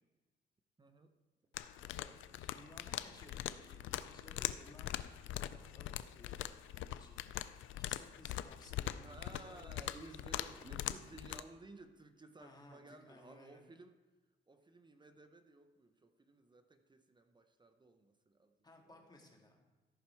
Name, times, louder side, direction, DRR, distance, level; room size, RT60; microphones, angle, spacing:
voice 1, 0.8-1.1 9.0-14.0 14.5-18.5, right 2 dB, 20° right, 8 dB, 0.8 m, -56 dB
sound 1, 1.5-11.4, left 12 dB, 80° left, 0.5 m, -42 dB
voice 2, 1.8-5.1 5.3-6.4 6.7-10.2 12.4-13.6 18.6-19.7, left 2 dB, 20° left, 1 dB, 2.0 m, -60 dB
14.0 x 5.8 x 4.5 m, 1.3 s
cardioid pair, 90°, 20 cm